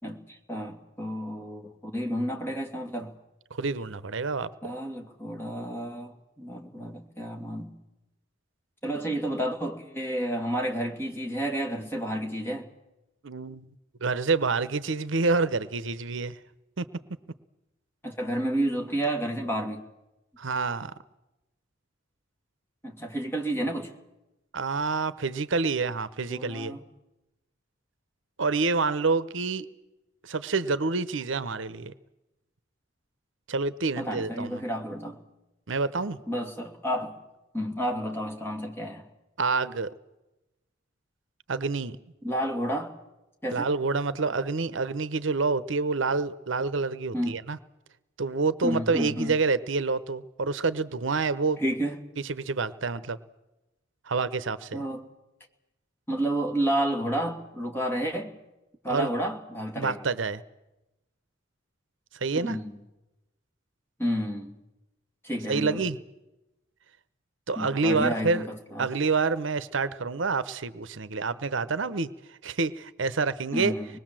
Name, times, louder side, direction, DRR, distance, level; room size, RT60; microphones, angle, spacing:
voice 1, 0.0-3.1 4.6-6.1 6.4-7.7 8.8-12.7 18.0-19.8 22.8-23.9 26.3-26.8 34.0-35.2 36.3-37.2 37.5-39.0 42.2-42.9 43.4-43.7 47.1-47.4 48.6-49.3 51.6-52.0 54.7-55.1 56.1-58.3 58.8-60.0 62.4-62.7 64.0-64.5 65.2-65.8 67.6-68.9 73.5-73.9, right 1 dB, 10° left, 2 dB, 2.5 m, -30 dB
voice 2, 3.5-4.5 13.2-13.7 14.0-16.4 16.8-16.9 20.4-20.9 24.5-26.8 28.4-29.7 30.2-31.9 33.5-34.6 35.7-36.2 39.4-39.9 41.5-42.0 43.5-47.6 48.2-51.6 52.2-53.2 54.1-54.8 58.9-59.1 59.8-60.4 62.1-62.6 65.5-66.0 67.5-68.5 68.8-73.8, right 4 dB, 70° right, 15 dB, 0.8 m, -27 dB
25.0 x 20.5 x 7.6 m, 0.99 s
head